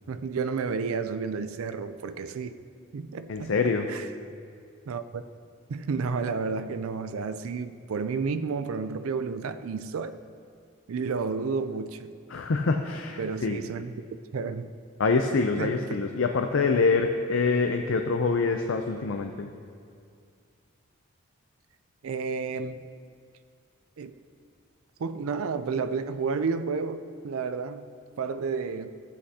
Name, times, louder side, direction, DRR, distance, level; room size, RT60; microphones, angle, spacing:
voice 1, 0.1-2.6 2.9-4.0 4.9-5.2 5.7-10.2 10.9-12.1 13.2-13.9 14.3-14.7 15.5-15.9 22.0-22.8 24.0-24.1 25.0-27.9 28.2-28.9, right 5 dB, 90° right, 10 dB, 0.4 m, -31 dB
voice 2, 3.3-3.9 12.3-13.6 15.0-19.5, left 4 dB, 70° left, 5 dB, 0.5 m, -25 dB
14.0 x 8.2 x 2.8 m, 2.3 s
head